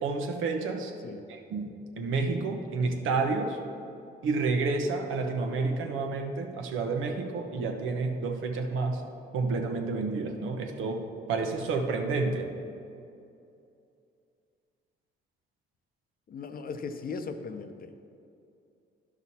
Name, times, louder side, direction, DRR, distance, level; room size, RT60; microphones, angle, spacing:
voice 1, 0.0-0.9 1.3-1.7 2.0-3.6 4.2-9.0 9.3-12.5, right 3 dB, 85° right, 4 dB, 1.0 m, -30 dB
voice 2, 16.3-18.0, left 4 dB, 45° left, 8 dB, 0.7 m, -38 dB
11.0 x 6.2 x 4.2 m, 2.6 s
cardioid pair, 90°, 20 cm